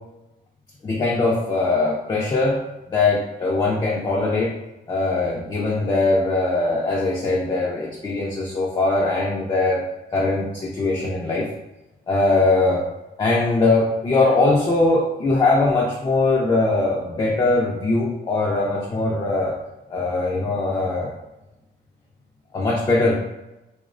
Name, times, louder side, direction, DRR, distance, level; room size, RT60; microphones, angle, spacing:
voice 1, 0.8-2.6 2.9-4.5 4.9-9.8 10.1-11.5 12.1-12.8 13.2-19.5 19.9-21.1 22.5-23.1, left 2 dB, 25° left, -4 dB, 0.4 m, -21 dB
2.7 x 2.0 x 2.5 m, 0.98 s
cardioid pair, 115°, 18 cm